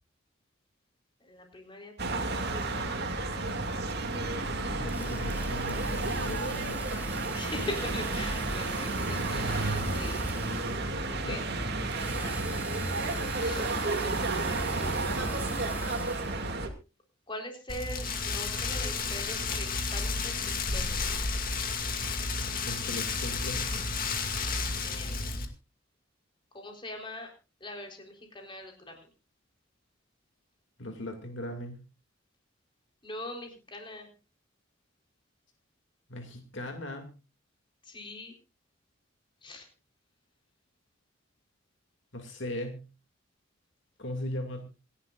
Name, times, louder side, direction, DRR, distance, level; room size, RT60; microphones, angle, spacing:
voice 1, 1.2-3.0 7.3-10.2 11.1-11.4 12.2-12.4 12.7-13.0 13.4-13.7 14.5-14.6 17.3-21.0 24.8-25.2 26.5-27.3 27.6-29.1 33.0-34.1 37.8-38.4 39.4-39.7, left 1 dB, 25° left, 2 dB, 4.1 m, -42 dB
sound 1, 2.0-16.7, right 2 dB, 55° right, 2.4 m, -31 dB
voice 2, 4.7-6.8 11.2-11.4 22.7-23.7 30.8-31.8 36.1-37.1 42.1-42.9 44.0-44.7, left 1 dB, 65° left, 4 dB, 2.5 m, -38 dB
Drill, 4.9-11.0 11.9-16.6, right 2 dB, 10° right, 2.1 m, -44 dB
Rain, 17.7-25.5, left 4 dB, 45° left, 2.2 m, -32 dB
27.0 x 11.5 x 2.5 m, 0.31 s
head